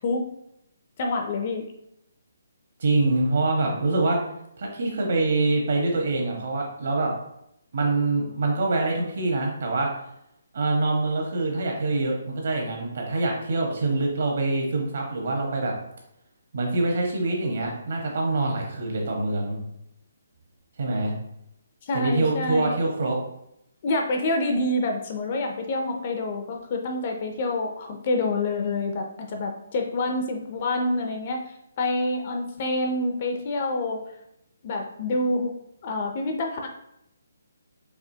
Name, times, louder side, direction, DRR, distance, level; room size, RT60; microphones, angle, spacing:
voice 1, 1.0-1.6 21.8-22.8 23.8-34.0 34.6-35.5 35.8-36.7, left 2 dB, 30° left, 3 dB, 0.4 m, -27 dB
voice 2, 2.8-4.2 4.6-7.1 7.7-9.9 10.5-15.7 16.5-19.6 20.8-21.1 21.9-23.2, right 2 dB, 50° right, 0 dB, 1.1 m, -25 dB
4.8 x 2.8 x 2.7 m, 0.79 s
hypercardioid pair, 175°, 0 cm